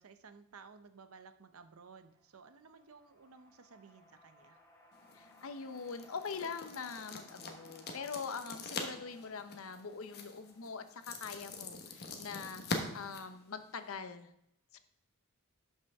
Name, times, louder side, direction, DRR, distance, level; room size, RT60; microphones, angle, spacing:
voice 1, 0.0-4.6, right 5 dB, 75° right, 9 dB, 0.7 m, -56 dB
sound 1, 2.1-11.7, left 1 dB, 15° left, 1.4 m, -63 dB
sound 2, 4.9-14.0, left 3 dB, 50° left, 1.2 m, -44 dB
voice 2, 5.1-12.6 12.9-14.3 14.7-14.8, left 5 dB, 70° left, 10 dB, 0.7 m, -43 dB
12.0 x 5.6 x 3.5 m, 0.77 s
head